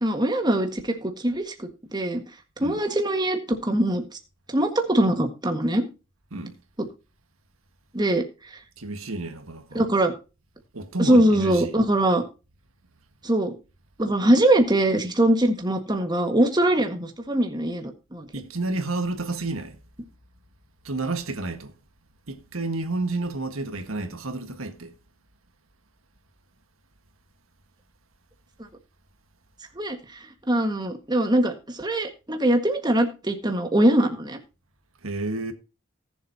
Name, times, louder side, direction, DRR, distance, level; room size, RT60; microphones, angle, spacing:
voice 1, 0.0-2.2 2.6-4.0 4.5-5.8 6.8-6.9 7.9-8.2 8.5-8.6 9.7-10.1 11.0-12.2 13.2-13.5 14.0-18.3 29.7-34.4, right 1 dB, 20° right, 1.7 m, -22 dB
voice 2, 8.8-9.8 10.7-11.8 18.3-19.8 20.8-21.7 22.3-25.0 35.0-35.5, right 2 dB, 80° right, 1.6 m, -30 dB
19.0 x 7.3 x 2.8 m
head